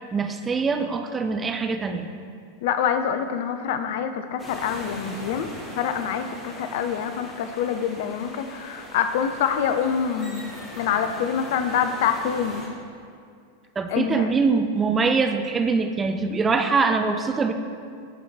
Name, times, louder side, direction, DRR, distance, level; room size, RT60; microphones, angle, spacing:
voice 1, 0.1-2.1 13.8-17.5, right 4 dB, 15° right, 6 dB, 0.4 m, -23 dB
voice 2, 2.6-10.4 10.8-12.7 13.9-14.4, left 7 dB, 50° left, 8 dB, 0.4 m, -26 dB
sound 1, 4.4-12.7, left 1 dB, 20° left, 1.3 m, -40 dB
11.0 x 3.8 x 3.4 m, 2.3 s
figure-of-eight pair, 90°, 0 cm